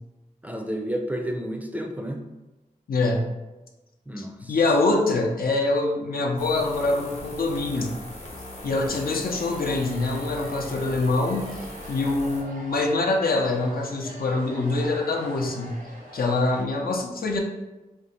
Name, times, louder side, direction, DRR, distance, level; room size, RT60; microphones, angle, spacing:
voice 1, 0.4-2.2 4.1-4.6 8.7-8.9, equal, 10° right, 2 dB, 0.4 m, -31 dB
voice 2, 2.9-3.2 4.2-7.9 8.6-11.5 11.9-15.8 16.1-17.4, left 2 dB, 80° left, 1 dB, 0.5 m, -24 dB
sound 1, 6.4-12.4, left 1 dB, 45° left, 0.8 m, -40 dB
sound 2, 9.3-16.6, equal, 70° right, 0.8 m, -43 dB
2.6 x 2.0 x 4.0 m, 1.1 s
wide cardioid pair, 55°, 15 cm